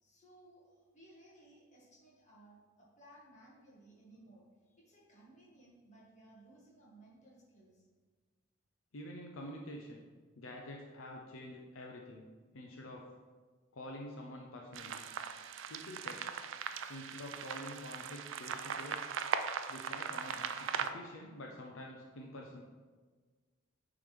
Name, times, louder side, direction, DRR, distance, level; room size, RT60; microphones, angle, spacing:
voice 1, 0.0-7.9, right 1 dB, 35° left, -5 dB, 1.7 m, -60 dB
voice 2, 8.9-10.0 10.4-12.3 12.5-13.1 13.7-15.1 15.7-16.4 16.9-19.1 19.7-22.6, left 1 dB, 75° left, 0 dB, 0.6 m, -47 dB
sound 1, 14.7-20.9, right 7 dB, 65° right, 0.4 m, -39 dB
9.1 x 3.8 x 3.3 m, 1.4 s
head